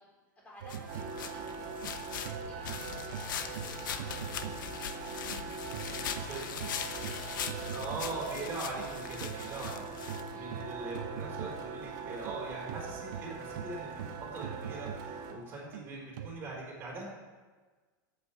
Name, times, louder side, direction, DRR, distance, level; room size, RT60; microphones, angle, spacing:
voice 1, 0.0-6.7 7.0-7.6 8.0-8.2 10.2-10.6, equal, 15° left, -4 dB, 4.0 m, -55 dB
sound 1, 0.6-5.4 5.7-16.3, right 7 dB, 80° right, 0.9 m, -43 dB
sound 2, 0.7-10.7, left 8 dB, 85° left, 1.1 m, -41 dB
sound 3, 0.9-15.3, right 5 dB, 40° right, 2.3 m, -42 dB
voice 2, 7.7-9.8 10.3-17.0, right 3 dB, 20° right, -3 dB, 4.2 m, -41 dB
11.5 x 8.8 x 7.3 m, 1.4 s
supercardioid pair, 165°, 10 cm